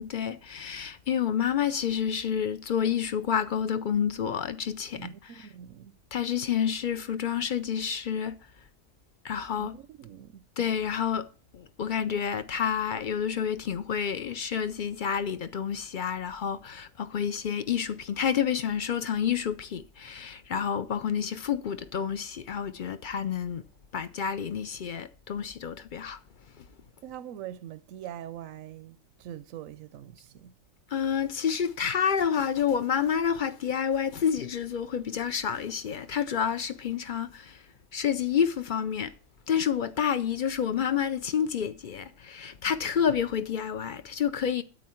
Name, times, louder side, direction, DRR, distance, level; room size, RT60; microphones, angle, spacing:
voice 1, 0.0-5.1 6.1-8.4 9.2-9.8 10.6-11.3 11.5-23.6 23.9-26.2 30.9-37.6 37.9-39.1 39.5-44.6, left 8 dB, 55° left, 0.6 m, -29 dB
voice 2, 4.9-6.0 9.6-10.4 27.0-30.5, right 10 dB, 80° right, 1.0 m, -43 dB
9.3 x 8.4 x 4.4 m
omnidirectional pair, 1.4 m